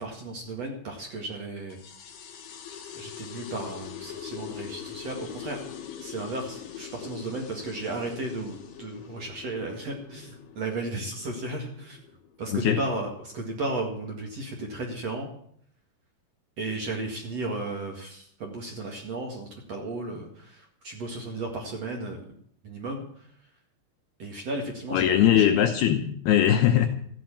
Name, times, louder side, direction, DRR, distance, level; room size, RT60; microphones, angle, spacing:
voice 1, 0.0-1.8 2.9-5.6 6.0-12.0 12.4-15.3 16.6-22.2 22.6-23.0 24.2-25.5, right 2 dB, 45° right, 1 dB, 2.4 m, -34 dB
sound 1, 1.7-12.7, left 9 dB, 60° left, 3.2 m, -43 dB
voice 2, 24.9-26.9, left 10 dB, 75° left, 6 dB, 2.4 m, -21 dB
14.5 x 9.4 x 8.8 m, 0.64 s
omnidirectional pair, 5.3 m